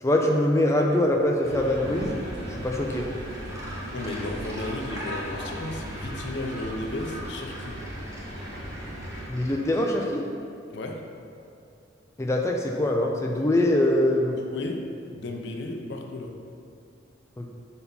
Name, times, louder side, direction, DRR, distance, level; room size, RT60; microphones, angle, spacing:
voice 1, 0.0-2.1 2.5-3.1 9.3-10.2 12.2-14.4 17.4-17.5, left 1 dB, 15° left, 0 dB, 0.4 m, -23 dB
sound 1, 1.4-9.3, right 1 dB, 60° right, 1.3 m, -37 dB
Gull seagull, 3.2-9.9, equal, 15° right, 0.9 m, -41 dB
voice 2, 3.9-7.7 10.7-11.0 14.4-16.3, left 2 dB, 65° left, 2 dB, 0.7 m, -34 dB
5.7 x 4.2 x 5.3 m, 2.5 s
head